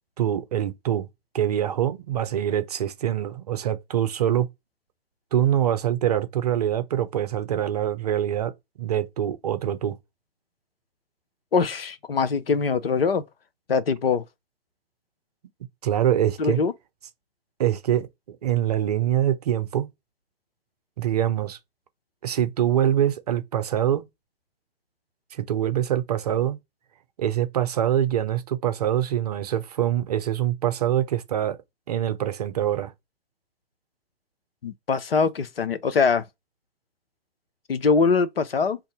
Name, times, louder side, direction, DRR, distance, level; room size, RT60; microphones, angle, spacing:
voice 1, 0.2-1.1 1.3-4.5 5.3-8.5 8.8-10.0 15.8-16.6 17.6-19.9 21.0-21.6 22.2-24.0 25.3-26.6 27.2-31.6 31.9-32.9, right 11 dB, 40° right, 0.6 m, -24 dB
voice 2, 11.5-13.2 13.7-14.2 16.4-16.7 34.6-36.2 37.7-38.8, left 5 dB, 70° left, 0.7 m, -22 dB
2.6 x 2.6 x 4.0 m
figure-of-eight pair, 130°, 31 cm